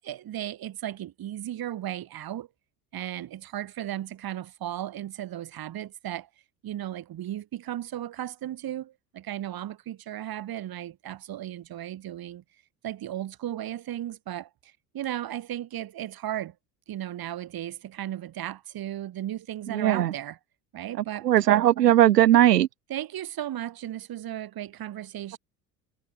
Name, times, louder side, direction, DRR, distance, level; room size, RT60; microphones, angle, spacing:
voice 1, 0.0-2.5 2.9-6.3 6.6-12.4 12.8-16.5 16.9-20.4 20.7-21.3 22.9-25.4, right 12 dB, 50° right, 6.3 m, -35 dB
voice 2, 19.7-20.1 21.2-22.7, right 12 dB, 90° right, 1.3 m, -18 dB
hypercardioid pair, 70°, 46 cm